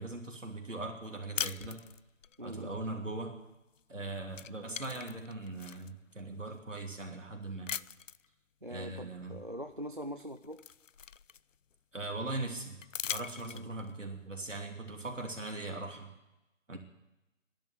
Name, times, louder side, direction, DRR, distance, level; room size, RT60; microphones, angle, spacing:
voice 1, 0.0-1.8 2.4-3.4 3.9-7.7 8.7-9.3 11.9-12.8 13.0-16.1 16.7-16.8, right 2 dB, 70° right, 2 dB, 3.1 m, -40 dB
sound 1, 1.4-2.4 3.8-4.0 4.3-5.9 6.5-6.6 7.7-8.3 9.7-9.8 10.2-11.7 12.8-13.9, left 7 dB, 75° left, 0.5 m, -40 dB
voice 2, 2.4-2.8 8.6-10.6 13.4-13.7, equal, 40° right, 8 dB, 0.5 m, -43 dB
12.5 x 11.0 x 7.8 m, 0.98 s
figure-of-eight pair, 170°, 39 cm